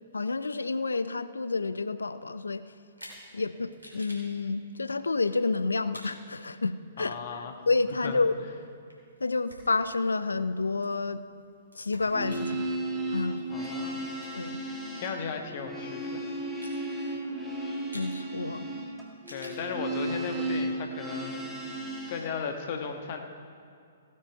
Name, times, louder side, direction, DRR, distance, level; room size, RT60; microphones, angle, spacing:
voice 1, 0.1-2.6 3.3-7.2 7.7-8.3 9.2-11.2 11.7-12.7 13.1-13.4 14.3-14.6 17.9-18.7, left 3 dB, 75° left, 13 dB, 0.5 m, -29 dB
sound 1, 2.9-3.3 3.7-4.3 5.1-5.4 5.9-6.1 7.4-9.2 9.5-9.6 9.9-14.7 15.0-15.1 15.8-16.0 16.4-16.8 17.9-18.1 19.2-19.6, equal, 90° right, 2.9 m, -50 dB
voice 2, 7.0-7.6 8.0-8.2 13.5-14.0 14.7-16.3 19.3-23.2, left 5 dB, 45° left, 4 dB, 1.4 m, -36 dB
sound 2, 12.0-22.3, right 1 dB, 5° right, 1.9 m, -34 dB
16.0 x 9.3 x 4.6 m, 2.4 s
figure-of-eight pair, 120°, 0 cm